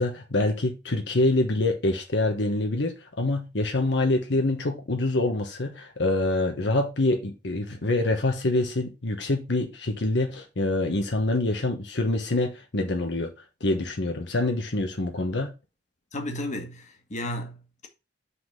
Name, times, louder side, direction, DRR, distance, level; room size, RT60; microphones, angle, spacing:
voice 1, 0.0-13.3 13.6-15.5, left 2 dB, 75° left, 1.1 m, -25 dB
voice 2, 16.1-17.9, left 1 dB, 45° left, 1.5 m, -34 dB
5.7 x 4.0 x 5.5 m
head